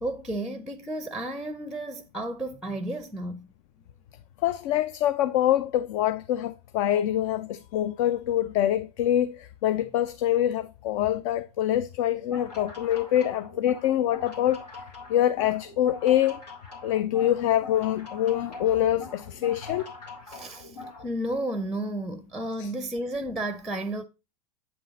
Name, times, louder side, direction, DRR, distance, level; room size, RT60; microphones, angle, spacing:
voice 1, 0.0-3.5 20.3-24.0, right 1 dB, ahead, 0.6 m, -32 dB
voice 2, 4.4-14.6 15.1-16.4 16.8-19.9 22.6-22.7, left 12 dB, 55° left, 0.5 m, -25 dB
sound 1, 12.2-21.1, left 3 dB, 85° left, 2.0 m, -43 dB
7.7 x 3.9 x 4.0 m
hypercardioid pair, 90°, 20 cm